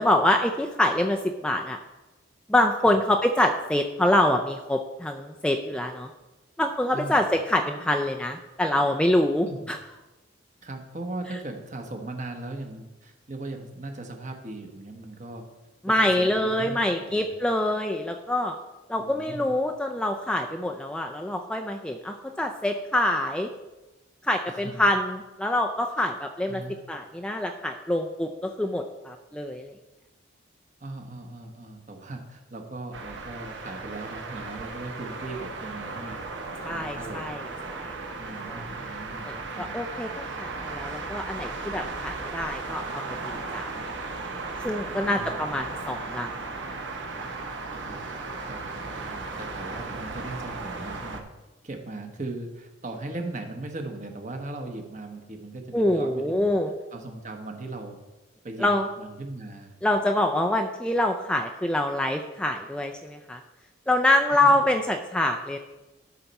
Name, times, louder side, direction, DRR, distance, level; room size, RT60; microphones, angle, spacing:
voice 1, 0.0-1.8 2.5-6.1 6.6-9.8 15.8-18.6 18.9-23.5 24.2-26.6 26.9-29.7 36.6-37.4 37.7-37.9 38.5-38.6 39.2-43.7 44.6-46.3 55.7-56.7 58.6-58.8 59.8-63.4 63.9-65.6, left 1 dB, 5° left, 3 dB, 0.4 m, -25 dB
voice 2, 6.9-7.2 9.4-9.7 10.6-15.5 15.9-17.2 19.0-19.5 24.5-24.8 26.5-26.8 30.8-36.2 36.6-37.3 38.2-39.8 45.0-45.5 47.7-48.0 48.4-51.2 51.6-56.5 56.9-58.0 58.4-58.7 59.0-59.8 64.3-64.5, right 2 dB, 40° right, 4 dB, 1.1 m, -38 dB
sound 1, 32.9-51.2, right 3 dB, 65° right, 1.0 m, -36 dB
12.5 x 5.8 x 4.1 m, 1.1 s
head